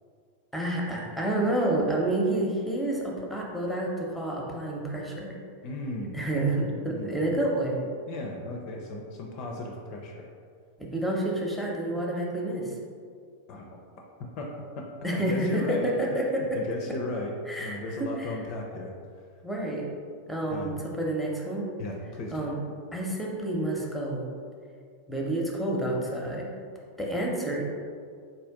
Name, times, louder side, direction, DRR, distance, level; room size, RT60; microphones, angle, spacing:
voice 1, 0.5-5.4 6.1-7.8 10.8-12.7 15.0-16.6 17.5-18.4 19.4-19.9 20.3-21.7 22.3-22.6 22.9-24.3 25.1-26.5 27.0-27.6, right 1 dB, ahead, -2 dB, 0.7 m, -29 dB
voice 2, 5.6-6.3 6.9-7.5 8.1-10.3 13.5-13.8 14.4-15.9 16.4-18.9 20.5-20.8 21.8-22.5, left 2 dB, 40° left, 1 dB, 0.4 m, -36 dB
4.0 x 2.5 x 3.5 m, 2.2 s
figure-of-eight pair, 90°, 0 cm